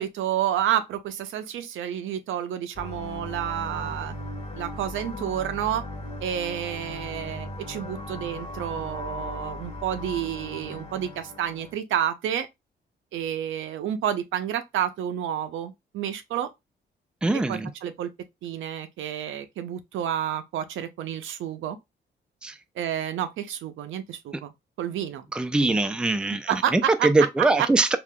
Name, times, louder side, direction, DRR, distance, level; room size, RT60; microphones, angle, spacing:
voice 1, 0.0-4.2 4.6-5.8 6.2-12.5 13.1-16.5 17.3-18.1 18.4-21.8 22.8-24.5 24.8-25.3 25.6-25.8 26.5-27.1 27.4-27.7, right 10 dB, 85° right, 0.5 m, -29 dB
sound 1, 2.7-11.7, left 2 dB, 35° left, 1.2 m, -37 dB
voice 2, 17.2-17.7 22.4-22.5 25.3-28.0, right 2 dB, 5° right, 0.3 m, -22 dB
3.5 x 2.4 x 2.2 m
cardioid pair, 75°, 20 cm